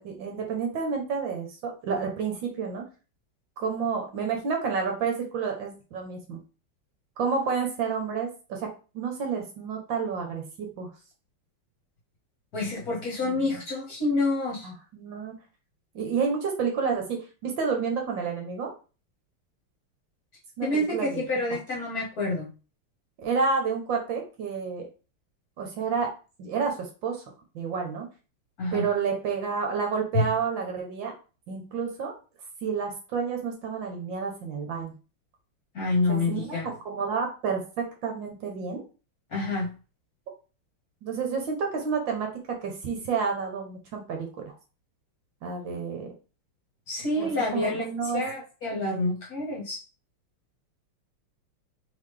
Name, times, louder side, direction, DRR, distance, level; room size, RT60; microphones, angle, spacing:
voice 1, 0.0-2.8 3.6-6.4 7.2-8.7 8.9-10.9 13.2-13.6 14.6-15.3 15.9-18.7 20.6-21.2 23.2-24.9 25.6-26.1 26.4-27.2 27.5-28.1 28.7-31.1 31.5-32.1 32.6-34.9 36.1-36.6 36.8-38.8 41.0-42.3 42.6-44.5 45.4-46.1 47.2-48.2, right 5 dB, 65° right, 2 dB, 1.5 m, -30 dB
voice 2, 12.5-14.7 20.6-22.5 28.6-28.8 30.1-30.3 35.7-36.7 39.3-39.7 46.9-47.8 48.1-49.8, left 2 dB, 45° left, -4 dB, 1.8 m, -28 dB
3.9 x 3.7 x 3.3 m, 0.34 s
omnidirectional pair, 2.4 m